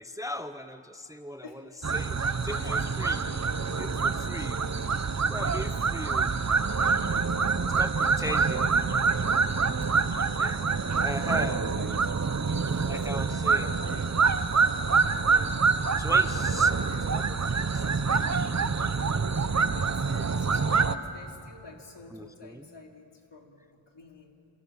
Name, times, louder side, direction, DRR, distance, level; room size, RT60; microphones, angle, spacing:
voice 1, 0.0-2.2 2.4-3.2 3.8-4.6 5.2-6.3 7.6-8.6 10.4-10.7 11.0-11.7 12.9-13.7 15.2-15.5 16.0-16.8 17.1-17.5 17.7-17.8 22.1-22.7, left 1 dB, 5° right, 9 dB, 0.8 m, -38 dB
voice 2, 1.4-1.9 2.2-4.3 4.6-4.8 8.0-8.1 8.4-9.4 9.9-10.1 11.2-12.7 13.0-14.4 14.8-15.3 16.6-17.3 19.8-24.4, left 3 dB, 65° left, 1 dB, 3.6 m, -50 dB
sound 1, 1.8-21.0, right 4 dB, 35° right, 0.9 m, -26 dB
28.0 x 27.5 x 7.3 m, 2.5 s
wide cardioid pair, 105°, 46 cm